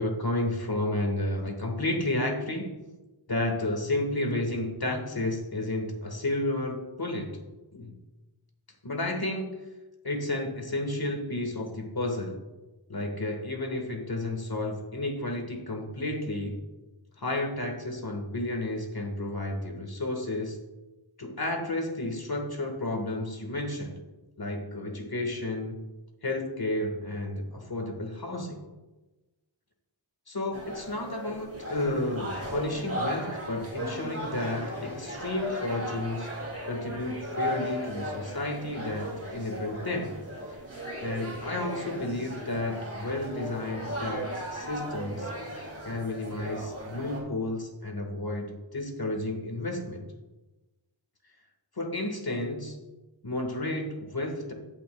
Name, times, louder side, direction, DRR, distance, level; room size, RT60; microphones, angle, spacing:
voice 1, 0.0-2.8 3.3-7.4 7.7-7.9 8.8-9.6 10.0-12.4 12.9-16.6 17.2-20.6 21.2-24.0 24.4-25.8 26.2-28.6 30.3-36.4 36.6-40.2 41.0-45.3 45.8-50.1 51.8-52.8 53.2-54.5, left 2 dB, 50° left, 2 dB, 1.6 m, -32 dB
sound 1, 30.5-47.2, equal, 30° right, 2.7 m, -37 dB
17.0 x 5.7 x 2.3 m, 1.1 s
wide cardioid pair, 55°, 49 cm